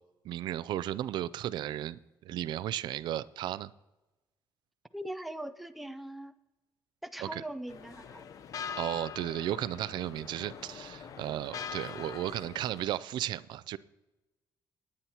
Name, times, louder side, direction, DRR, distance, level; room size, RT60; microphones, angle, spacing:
voice 1, 0.2-2.0 2.2-3.7 7.2-7.4 8.8-13.8, right 12 dB, 80° right, 18 dB, 0.4 m, -34 dB
voice 2, 4.9-6.4 7.0-8.2, right 1 dB, ahead, 10 dB, 0.5 m, -41 dB
sound 1, 7.7-12.9, left 7 dB, 50° left, 0.7 m, -43 dB
18.5 x 9.5 x 2.9 m, 1.0 s
cardioid pair, 160°, 8 cm